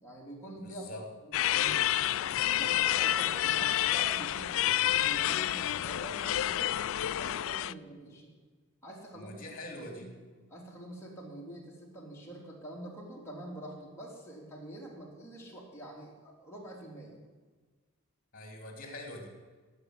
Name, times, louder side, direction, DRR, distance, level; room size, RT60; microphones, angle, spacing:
voice 1, 0.0-0.8 1.2-6.7 7.1-8.3 8.8-9.4 9.7-10.1 10.5-17.2, right 1 dB, 10° left, -4 dB, 3.5 m, -46 dB
voice 2, 0.6-1.0 9.1-10.1 18.3-19.3, left 1 dB, 40° left, 3 dB, 3.0 m, -44 dB
sound 1, 1.3-7.7, left 13 dB, 65° left, 0.3 m, -29 dB
18.0 x 7.6 x 8.1 m, 1.4 s
head